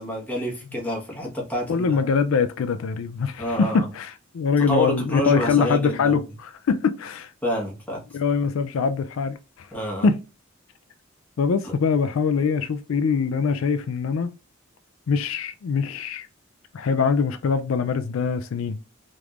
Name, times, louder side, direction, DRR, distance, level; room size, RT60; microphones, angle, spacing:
voice 1, 0.0-2.0 3.4-3.9 4.7-6.1 7.4-8.0 9.7-10.1 11.6-11.8, equal, 10° left, 1.1 m, -28 dB
voice 2, 1.7-7.3 8.1-9.7 10.0-10.2 11.4-14.3 15.1-16.3 16.7-18.8, left 5 dB, 80° left, 0.4 m, -23 dB
3.4 x 3.1 x 2.4 m
head